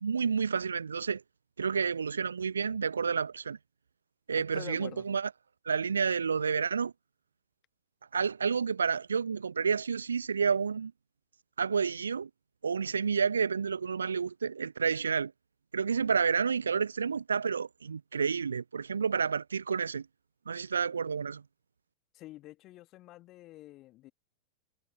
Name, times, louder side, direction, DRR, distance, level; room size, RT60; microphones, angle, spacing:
voice 1, 0.0-1.2 1.6-3.6 4.3-5.3 5.7-6.9 8.1-10.9 11.6-12.3 12.6-15.3 15.7-20.1 20.5-21.4, right 6 dB, 70° right, 0.5 m, -30 dB
voice 2, 4.5-5.0 22.1-24.1, left 17 dB, 35° left, 1.4 m, -47 dB
figure-of-eight pair, 90°, 0 cm